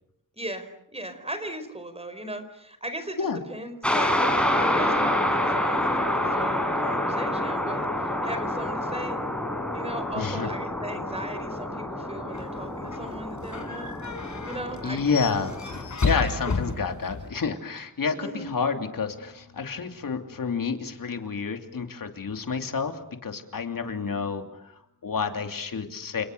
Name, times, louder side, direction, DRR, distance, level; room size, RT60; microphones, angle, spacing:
voice 1, 0.4-4.1 4.5-9.2 9.7-13.9 14.4-15.3 16.0-16.2 18.2-18.5, right 1 dB, 20° right, 10 dB, 4.8 m, -38 dB
sound 1, 3.8-15.9, left 1 dB, 5° left, 5.9 m, -28 dB
voice 2, 10.1-10.5 14.8-15.5 16.0-26.2, left 5 dB, 75° left, 5 dB, 3.0 m, -29 dB
sound 2, 12.3-17.3, left 4 dB, 55° left, 5.5 m, -32 dB
30.0 x 28.5 x 6.8 m, 0.75 s
wide cardioid pair, 105°, 34 cm